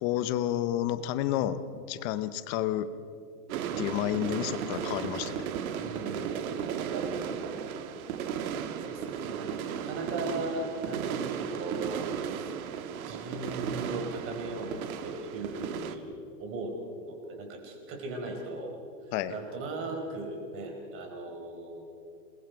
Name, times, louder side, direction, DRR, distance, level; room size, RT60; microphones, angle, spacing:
voice 1, 0.0-2.9 3.8-5.5 19.1-19.3, left 12 dB, 25° left, 13 dB, 0.7 m, -30 dB
sound 1, 3.5-16.0, right 8 dB, 65° right, 1.6 m, -35 dB
voice 2, 5.8-7.6 8.5-12.6 13.0-14.8 15.0-16.1 16.4-18.8 19.3-21.8, right 2 dB, 30° right, 2 dB, 4.4 m, -38 dB
27.5 x 21.5 x 4.6 m, 2.4 s
supercardioid pair, 155°, 46 cm